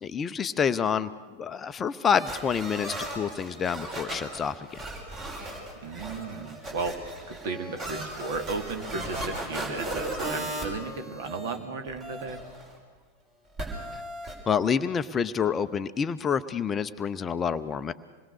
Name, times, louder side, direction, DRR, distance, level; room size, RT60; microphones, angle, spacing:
voice 1, 0.0-1.1 1.4-4.8 13.9-14.0 14.5-17.9, left 7 dB, 20° left, 11 dB, 0.7 m, -28 dB
sound 1, 2.1-11.6 11.9-12.7 13.6-14.3, right 1 dB, 30° right, 5.5 m, -36 dB
voice 2, 5.8-7.0 7.3-12.4, right 4 dB, 50° right, 5 dB, 2.3 m, -35 dB
26.5 x 21.0 x 6.6 m, 1.3 s
figure-of-eight pair, 90°, 0 cm